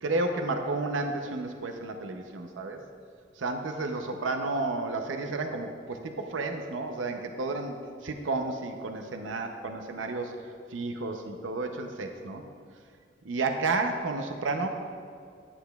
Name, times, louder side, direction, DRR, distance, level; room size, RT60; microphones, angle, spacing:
voice 1, 0.0-2.8 3.4-7.8 8.0-10.3 10.7-12.4 13.2-14.7, right 3 dB, 80° right, 5 dB, 0.6 m, -31 dB
9.8 x 8.6 x 2.3 m, 2.2 s
head